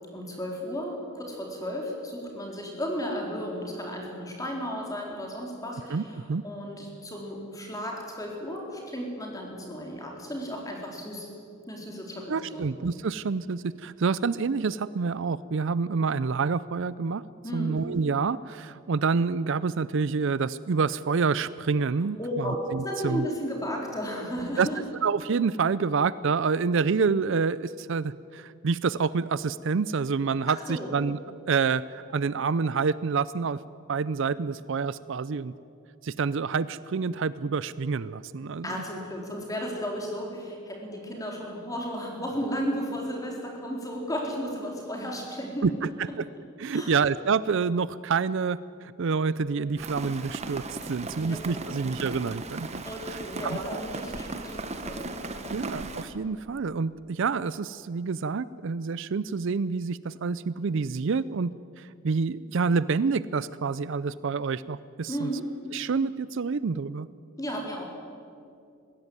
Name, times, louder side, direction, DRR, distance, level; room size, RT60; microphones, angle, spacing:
voice 1, 0.1-11.3 11.7-12.7 17.4-17.8 22.2-24.8 30.5-30.9 38.6-45.7 46.7-46.9 51.2-51.7 52.8-55.6 65.1-65.5 67.4-67.8, equal, 15° left, 0 dB, 4.1 m, -34 dB
voice 2, 5.9-6.4 12.3-17.2 17.5-23.3 24.6-24.7 25.0-31.2 31.5-31.8 32.1-33.6 33.9-35.5 36.0-38.8 45.6-46.3 46.6-50.6 50.9-52.8 53.4-53.7 55.5-61.5 61.8-65.3 65.7-67.1, right 5 dB, 60° right, 17 dB, 0.5 m, -27 dB
Rain, 49.8-56.0, right 2 dB, 30° right, 1.3 m, -37 dB
21.0 x 16.0 x 9.7 m, 2.4 s
head